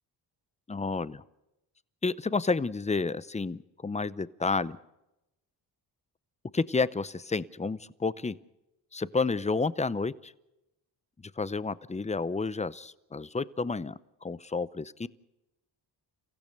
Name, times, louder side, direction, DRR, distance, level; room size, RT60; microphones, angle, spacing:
voice 1, 0.7-1.2 2.0-4.8 6.5-8.4 8.9-10.3 11.4-15.1, left 4 dB, 15° left, 18 dB, 0.7 m, -30 dB
30.0 x 15.5 x 6.8 m, 0.93 s
cardioid pair, 80°, 43 cm